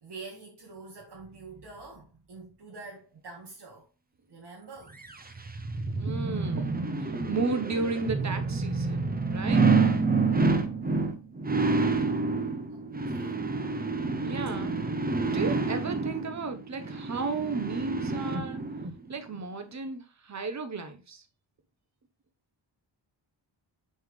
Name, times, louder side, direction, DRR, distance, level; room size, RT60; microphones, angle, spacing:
voice 1, 0.0-3.9 4.3-5.0 10.6-10.9 12.7-13.4, right 3 dB, 65° right, 1.7 m, -46 dB
sound 1, 5.0-18.9 19.4-19.5, right 3 dB, 20° right, 0.7 m, -28 dB
voice 2, 6.0-6.7 7.0-9.7 14.2-14.7 15.2-18.6 19.1-21.2, right 4 dB, 40° right, 1.0 m, -34 dB
7.1 x 4.4 x 3.2 m
wide cardioid pair, 115°, 44 cm